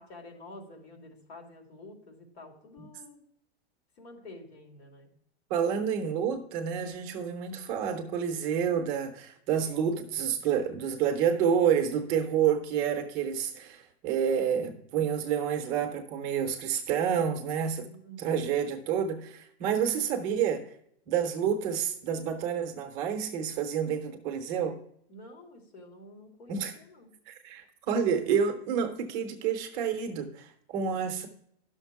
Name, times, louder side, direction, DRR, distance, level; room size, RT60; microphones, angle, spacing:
voice 1, 0.0-3.2 4.0-5.1 17.8-18.5 25.1-27.1, left 1 dB, 90° left, 3.0 m, -49 dB
voice 2, 5.5-17.9 18.2-20.7 21.1-24.8 26.5-26.7 27.3-31.3, right 7 dB, 20° right, 0.6 m, -29 dB
11.0 x 6.4 x 4.6 m
supercardioid pair, 175°, 32 cm